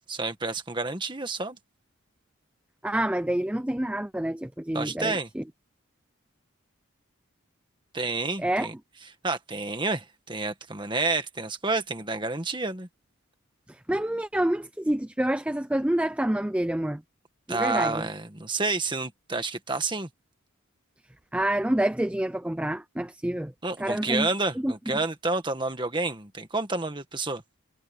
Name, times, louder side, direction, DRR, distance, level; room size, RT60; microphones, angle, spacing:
voice 1, 0.1-1.6 4.7-5.3 7.9-8.7 9.2-12.9 17.5-20.1 23.6-27.4, right 3 dB, 20° right, 1.7 m, -29 dB
voice 2, 2.8-5.4 8.4-8.7 13.9-17.0 17.5-18.1 21.3-23.5 23.8-24.3 24.6-24.7, right 1 dB, 5° right, 0.4 m, -27 dB
head